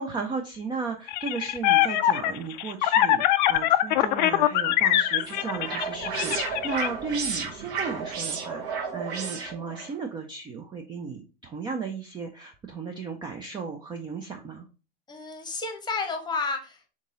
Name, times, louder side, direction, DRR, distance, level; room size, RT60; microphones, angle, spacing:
voice 1, 0.0-14.7, right 4 dB, 15° right, 4 dB, 0.4 m, -35 dB
sound 1, 1.1-6.9, left 13 dB, 45° left, 0.4 m, -23 dB
sound 2, 4.7-9.9, right 5 dB, 55° right, 1.1 m, -33 dB
voice 2, 15.1-16.9, left 4 dB, 15° left, 6 dB, 0.9 m, -31 dB
3.8 x 3.7 x 3.9 m, 0.33 s
hypercardioid pair, 100°, 31 cm